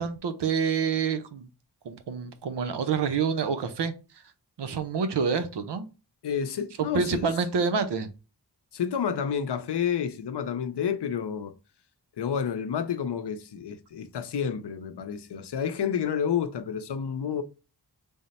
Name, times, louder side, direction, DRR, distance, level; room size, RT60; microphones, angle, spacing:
voice 1, 0.0-1.5 1.8-3.9 4.6-5.9 6.8-8.1, right 6 dB, 85° right, 0.6 m, -27 dB
voice 2, 6.2-7.3 8.7-11.5 12.2-17.4, left 7 dB, 85° left, 0.6 m, -30 dB
3.5 x 2.0 x 4.1 m
wide cardioid pair, 50°, 40 cm